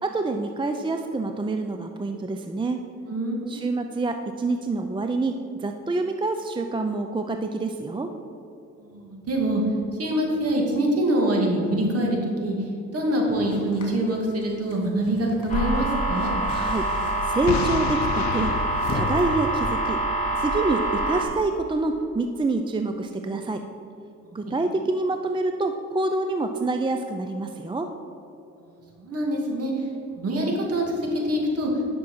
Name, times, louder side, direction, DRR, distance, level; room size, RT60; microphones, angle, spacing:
voice 1, 0.0-2.8 3.5-8.1 16.5-18.6 18.9-20.0 20.3-23.6 24.3-27.9, right 3 dB, 15° right, 6 dB, 0.5 m, -27 dB
voice 2, 3.1-3.6 8.8-9.6 10.0-16.3 24.2-24.5 28.6-28.7 29.0-29.9 30.2-31.7, right 1 dB, 50° right, -1 dB, 2.4 m, -25 dB
sound 1, 13.3-19.3, left 3 dB, 45° left, 2.5 m, -39 dB
sound 2, 15.5-21.2, right 2 dB, 25° left, 2.3 m, -26 dB
Boom, 17.5-20.3, left 11 dB, 65° left, 0.4 m, -31 dB
10.5 x 6.1 x 5.6 m, 2.7 s
cardioid pair, 90°, 30 cm